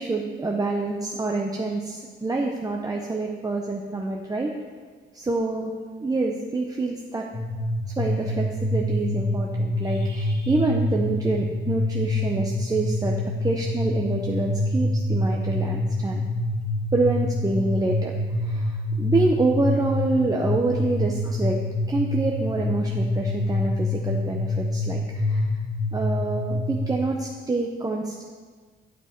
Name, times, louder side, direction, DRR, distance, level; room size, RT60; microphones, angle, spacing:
voice 1, 0.0-4.5 5.1-5.7 6.0-7.3 8.0-16.3 16.9-18.1 18.4-21.6 21.9-25.5 25.9-28.2, right 3 dB, 20° right, 0 dB, 0.7 m, -26 dB
sound 1, 7.3-26.9, left 1 dB, 25° left, 1.3 m, -26 dB
8.3 x 6.1 x 4.5 m, 1.5 s
cardioid pair, 90°, 20 cm